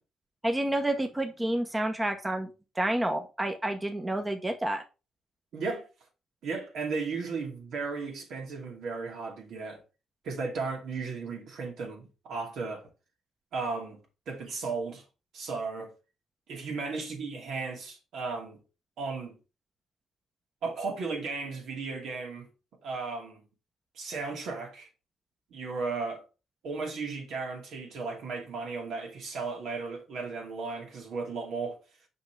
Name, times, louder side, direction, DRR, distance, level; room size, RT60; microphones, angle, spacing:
voice 1, 0.4-2.5 2.7-4.8, right 1 dB, 15° right, 0.9 m, -29 dB
voice 2, 5.5-5.8 6.4-9.8 10.2-12.9 13.5-14.0 14.3-15.0 15.3-15.9 16.5-18.6 19.0-19.4 20.6-22.5 22.8-23.4 23.9-24.9 25.5-26.2 26.6-31.8, right 4 dB, 75° right, 2.5 m, -35 dB
5.9 x 5.5 x 3.3 m
cardioid pair, 90°, 0 cm